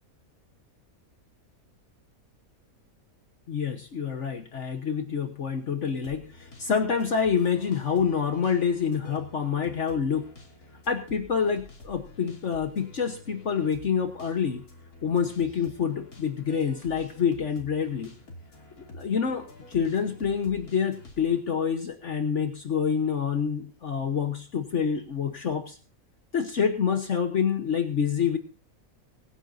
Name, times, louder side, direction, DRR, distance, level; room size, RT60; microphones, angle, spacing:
voice 1, 3.5-10.2 10.9-14.6 15.0-18.1 18.9-25.8 26.3-28.4, left 7 dB, 55° left, 7 dB, 1.4 m, -27 dB
sound 1, 6.0-21.4, left 2 dB, 80° left, 3.4 m, -49 dB
24.5 x 9.9 x 2.7 m, 0.34 s
omnidirectional pair, 1.6 m